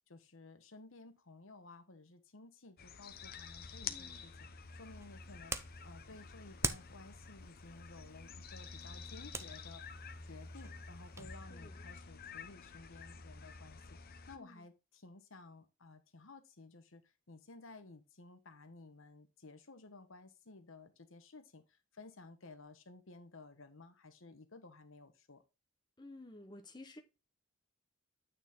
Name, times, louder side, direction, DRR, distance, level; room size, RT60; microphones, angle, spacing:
voice 1, 0.1-9.8 10.2-25.4, left 3 dB, 65° left, 1.2 m, -55 dB
sound 1, 2.8-14.4, left 5 dB, 45° left, 0.8 m, -49 dB
voice 2, 3.9-4.2 11.5-11.8 14.4-14.6 26.0-27.0, left 2 dB, 20° left, 1.0 m, -53 dB
sound 2, 4.6-11.4, right 3 dB, 15° right, 0.5 m, -45 dB
9.1 x 4.3 x 3.6 m
head